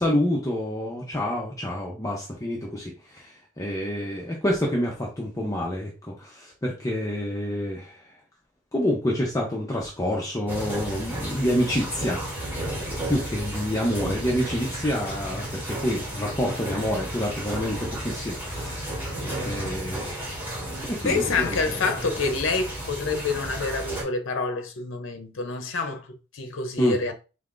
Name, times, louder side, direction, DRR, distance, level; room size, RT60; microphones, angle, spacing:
voice 1, 0.0-8.1 8.7-12.2 12.8-20.3 20.8-21.8 26.8-27.0, equal, 15° left, 0.7 m, -28 dB
sound 1, 10.5-24.0, right 1 dB, 10° right, 2.5 m, -33 dB
voice 2, 21.0-27.1, left 4 dB, 65° left, 0.7 m, -27 dB
5.6 x 3.3 x 2.5 m
head